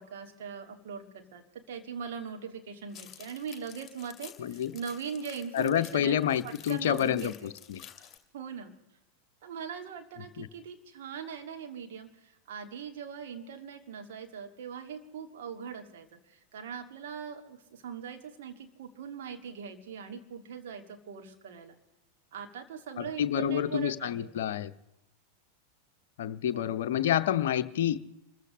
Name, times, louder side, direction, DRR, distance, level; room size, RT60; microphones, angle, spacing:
voice 1, 0.0-6.2 6.4-7.5 8.3-8.7 9.4-21.8 22.3-24.3 26.5-26.8, right 7 dB, 55° right, 4 dB, 2.1 m, -41 dB
sound 1, 2.9-8.2, left 8 dB, 20° left, 2.5 m, -51 dB
voice 2, 4.4-4.7 5.5-7.3 7.7-7.8 10.4-10.5 23.0-24.7 26.2-28.0, left 10 dB, 55° left, 13 dB, 0.7 m, -28 dB
28.0 x 15.0 x 3.1 m, 0.93 s
figure-of-eight pair, 90°, 0 cm